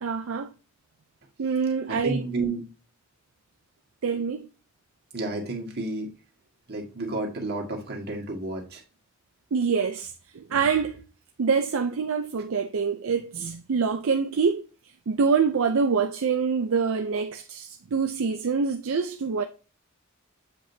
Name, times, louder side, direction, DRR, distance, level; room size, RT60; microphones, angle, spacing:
voice 1, 0.0-0.5 1.4-2.2 4.0-4.4 9.5-11.1 11.4-14.6 15.1-19.4, right 5 dB, 70° right, 0.5 m, -25 dB
voice 2, 1.9-2.6 5.1-6.1 6.7-8.8, right 2 dB, 50° right, 1.7 m, -31 dB
7.6 x 5.0 x 2.7 m
head